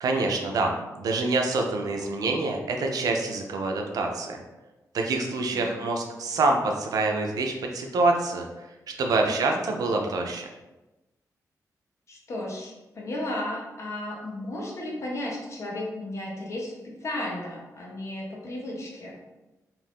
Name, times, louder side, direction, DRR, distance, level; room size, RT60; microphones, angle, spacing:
voice 1, 0.0-4.4 4.9-8.5 9.0-10.5, right 3 dB, 75° right, 2 dB, 0.4 m, -26 dB
voice 2, 9.2-9.5 12.1-19.2, left 1 dB, 50° left, -2 dB, 0.7 m, -34 dB
2.5 x 2.5 x 3.4 m, 1.1 s
wide cardioid pair, 130°, 6 cm